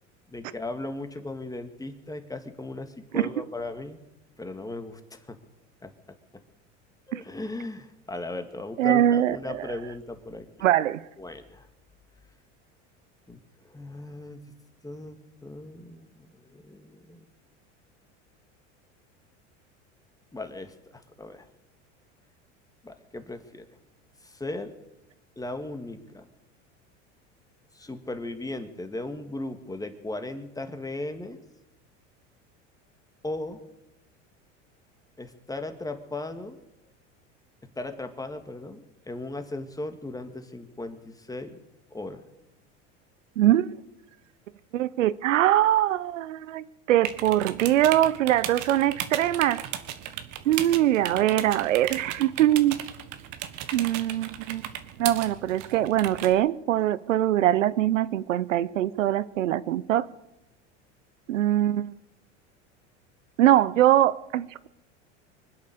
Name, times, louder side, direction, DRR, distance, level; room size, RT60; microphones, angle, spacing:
voice 1, 0.3-4.0 4.4-5.4 5.8-5.9 7.1-10.6 11.2-11.7 13.3-13.4 13.6-14.4 14.8-17.2 20.3-21.5 22.8-23.7 24.2-24.7 25.4-26.3 27.7-31.4 33.2-33.6 35.2-36.6 37.8-41.6 41.9-42.2, left 2 dB, 10° left, 1.9 m, -37 dB
voice 2, 8.8-9.7 10.6-11.0 43.4-43.7 44.7-49.6 50.5-52.8 53.7-54.7 55.0-60.1 61.3-61.9 63.4-64.7, right 12 dB, 90° right, 0.8 m, -23 dB
sound 1, 47.0-56.3, right 11 dB, 55° right, 1.4 m, -36 dB
25.0 x 8.3 x 6.8 m
hypercardioid pair, 90°, 37 cm